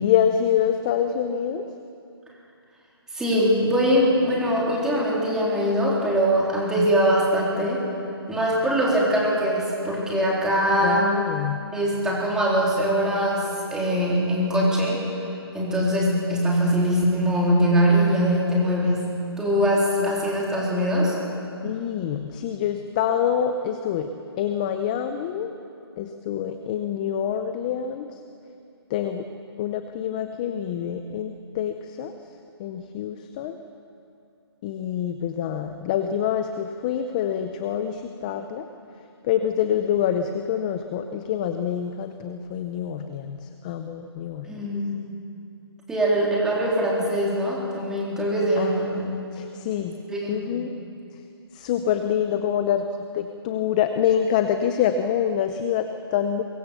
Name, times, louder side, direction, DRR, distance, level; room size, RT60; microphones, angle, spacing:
voice 1, 0.0-1.6 6.8-6.9 10.8-11.6 20.0-20.1 21.6-24.1 24.4-25.5 26.0-28.1 28.9-29.2 29.6-32.1 32.6-33.6 34.6-38.7 39.2-44.5 48.6-50.0 50.3-50.7 51.5-52.9 53.1-56.4, left 9 dB, 20° left, 8 dB, 0.7 m, -26 dB
voice 2, 3.1-7.8 8.3-11.1 11.7-15.0 15.5-19.0 19.4-21.2 44.5-44.9 45.9-48.9 50.1-50.4, equal, 5° right, -4 dB, 3.6 m, -22 dB
23.5 x 23.0 x 6.9 m, 2.6 s
hypercardioid pair, 165°, 14 cm